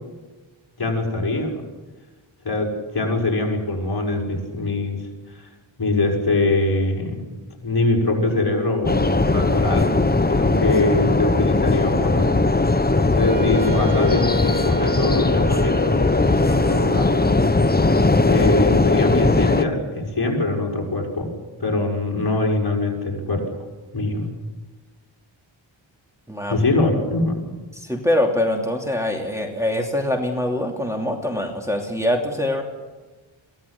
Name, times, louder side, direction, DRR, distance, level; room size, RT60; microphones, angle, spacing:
voice 1, 0.8-1.6 2.4-5.0 5.3-5.5 5.8-10.0 10.3-12.3 13.0-16.0 16.3-17.4 18.3-21.3 21.6-23.6 23.9-24.3 26.5-27.6, left 2 dB, 50° left, 0 dB, 6.4 m, -23 dB
sound 1, 8.9-19.6, left 2 dB, 20° left, 1.0 m, -19 dB
Wind instrument woodwind instrument, 13.2-18.2, left 2 dB, 55° right, 2.1 m, -31 dB
voice 2, 26.3-26.6 27.7-32.6, left 1 dB, 5° right, 0 dB, 2.8 m, -23 dB
23.5 x 17.5 x 8.5 m, 1.3 s
wide cardioid pair, 90°, 49 cm